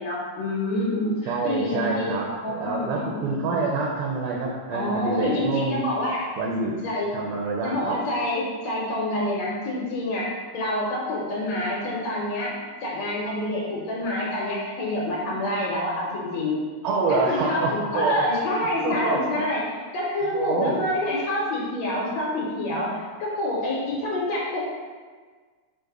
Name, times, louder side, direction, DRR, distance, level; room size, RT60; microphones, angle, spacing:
voice 1, 0.0-2.1 2.4-3.5 4.7-6.2 6.8-7.1 7.6-12.5 12.8-16.6 17.1-24.6, left 1 dB, 75° left, -4 dB, 1.8 m, -27 dB
voice 2, 1.3-5.8 6.4-6.7 7.1-8.0 16.8-18.3 18.8-19.5 20.3-20.7, right 3 dB, 80° right, -2 dB, 1.5 m, -26 dB
5.1 x 2.1 x 4.6 m, 1.5 s
omnidirectional pair, 3.4 m